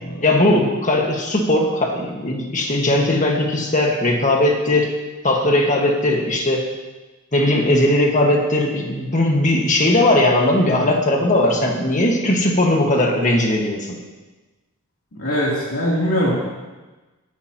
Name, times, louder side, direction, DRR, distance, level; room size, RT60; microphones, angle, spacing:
voice 1, 0.2-4.9 5.2-6.6 7.3-13.9, left 1 dB, 35° left, 1 dB, 1.6 m, -18 dB
voice 2, 15.1-16.3, equal, 65° left, -6 dB, 3.1 m, -22 dB
18.5 x 9.8 x 3.0 m, 1.2 s
head